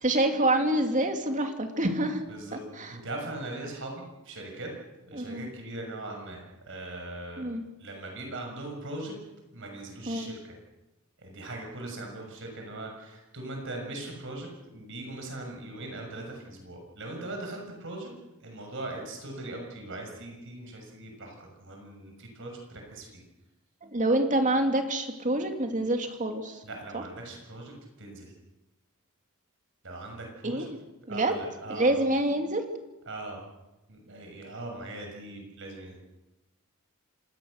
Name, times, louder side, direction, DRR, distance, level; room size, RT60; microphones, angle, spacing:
voice 1, 0.0-2.2 2.8-3.0 5.1-5.5 7.4-7.6 10.1-10.3 23.8-26.6 26.9-27.0 30.4-30.8 31.1-31.3 31.7-32.6, right 1 dB, 35° right, 5 dB, 2.6 m, -27 dB
voice 2, 2.3-2.6 2.9-4.7 5.1-7.5 7.8-9.2 9.5-10.6 11.2-18.1 18.4-23.2 26.6-28.3 29.8-30.7 31.1-31.9 33.1-33.4 33.9-36.0, right 2 dB, 60° right, 2 dB, 6.5 m, -40 dB
26.5 x 19.5 x 6.6 m, 1.0 s
head